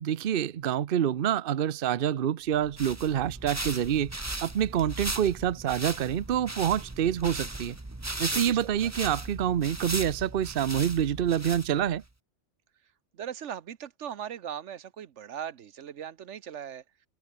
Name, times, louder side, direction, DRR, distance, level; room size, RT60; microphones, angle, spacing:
voice 1, 0.0-4.1 4.4-7.8 8.2-12.0, right 10 dB, 55° right, 0.9 m, -27 dB
sound 1, 2.5-12.0, right 2 dB, 15° right, 1.1 m, -37 dB
voice 2, 8.3-8.9 13.1-16.8, right 9 dB, 85° right, 1.2 m, -39 dB
omnidirectional pair, 1.2 m